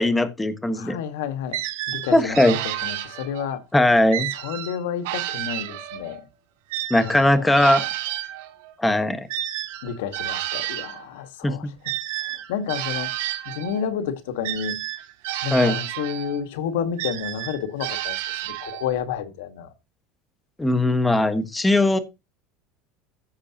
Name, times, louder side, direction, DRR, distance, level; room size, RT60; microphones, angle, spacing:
voice 1, 0.0-1.0 2.1-2.6 3.7-4.3 6.9-7.8 8.8-9.3 11.4-11.7 15.5-15.8 20.6-22.0, left 1 dB, 10° left, 1.3 m, -19 dB
voice 2, 0.7-1.6 1.9-3.6 4.3-6.3 7.0-7.7 9.8-11.7 12.2-13.1 13.4-14.8 15.4-18.2 18.4-19.7, left 8 dB, 90° left, 1.5 m, -30 dB
sound 1, 1.5-3.6 4.1-6.2 6.7-11.0 11.8-13.8 14.4-16.4 17.0-19.0, right 14 dB, 85° right, 2.1 m, -31 dB
15.5 x 6.7 x 2.9 m
supercardioid pair, 125°, 0 cm